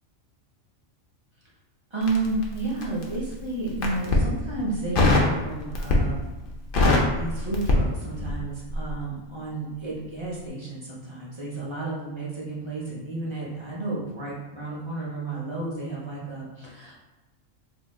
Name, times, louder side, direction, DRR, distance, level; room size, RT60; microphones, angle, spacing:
voice 1, 1.9-6.3 6.8-17.0, right 2 dB, 35° right, -5 dB, 0.4 m, -32 dB
Crackle, 2.0-3.1 3.7-4.3 4.9-5.3 5.7-6.2 6.5-8.4 8.7-8.9, left 2 dB, 60° left, 0.6 m, -22 dB
2.7 x 2.4 x 3.5 m, 1.1 s
omnidirectional pair, 1.4 m